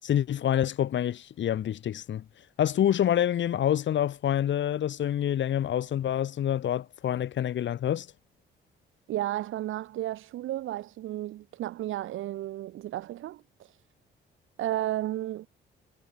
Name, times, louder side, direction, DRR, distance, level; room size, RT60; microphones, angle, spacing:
voice 1, 0.0-2.2 2.6-8.1, left 10 dB, 70° left, 6.9 m, -27 dB
voice 2, 9.1-13.8 14.6-15.5, right 14 dB, 85° right, 4.2 m, -33 dB
cardioid pair, 90°, 20 cm